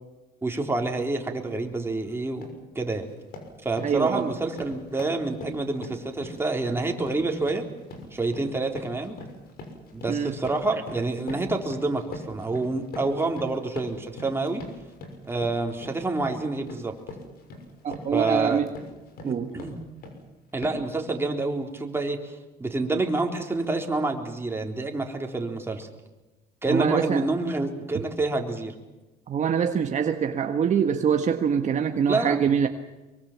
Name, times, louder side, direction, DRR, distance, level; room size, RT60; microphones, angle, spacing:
voice 1, 0.4-2.5 2.8-3.0 3.6-7.7 8.1-9.2 9.9-14.6 15.3-16.9 18.1-18.6 19.2-19.7 20.5-22.2 22.6-25.9 26.6-28.7 32.1-32.4, right 2 dB, 15° right, 2 dB, 3.8 m, -28 dB
sound 1, 1.6-1.8 2.2-2.6 3.0-20.2 20.6-21.0, left 2 dB, 65° left, 6.2 m, -42 dB
voice 2, 3.8-4.3 10.1-10.3 17.8-18.7 19.2-19.6 26.7-27.2 29.3-32.7, right 7 dB, 45° right, 5 dB, 1.6 m, -24 dB
24.0 x 23.5 x 7.5 m, 1.1 s
cardioid pair, 110°, 17 cm